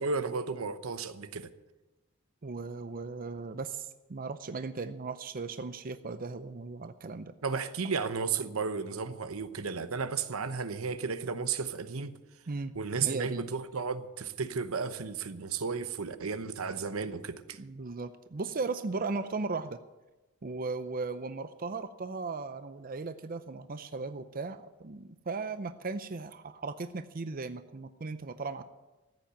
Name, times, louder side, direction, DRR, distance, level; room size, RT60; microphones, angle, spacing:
voice 1, 0.0-1.5 7.4-12.2 12.7-17.6, right 5 dB, 85° right, 0.9 m, -33 dB
voice 2, 2.4-7.3 12.5-13.5 17.6-19.8 20.4-28.6, right 3 dB, 45° right, 0.6 m, -37 dB
14.5 x 8.5 x 8.9 m
head